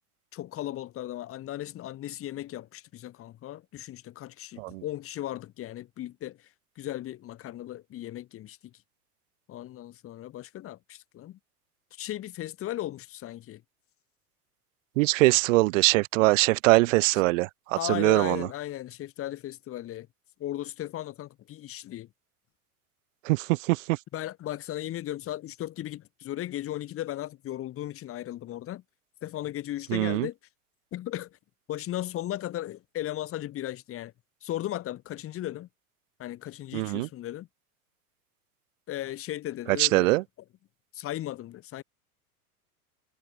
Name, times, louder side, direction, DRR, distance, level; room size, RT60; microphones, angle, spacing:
voice 1, 0.3-6.5 6.8-8.7 9.5-11.4 11.9-13.6 17.8-20.1 20.4-22.1 24.1-28.8 29.2-30.4 30.9-31.4 31.7-34.1 34.4-35.7 36.2-37.5 38.9-40.1 40.9-41.8, left 13 dB, 30° left, 1.3 m, -36 dB
voice 2, 15.0-18.5 23.3-23.8 29.9-30.3 36.7-37.1 39.8-40.2, right 22 dB, 60° right, 0.5 m, -22 dB
hypercardioid pair, 100°, 45 cm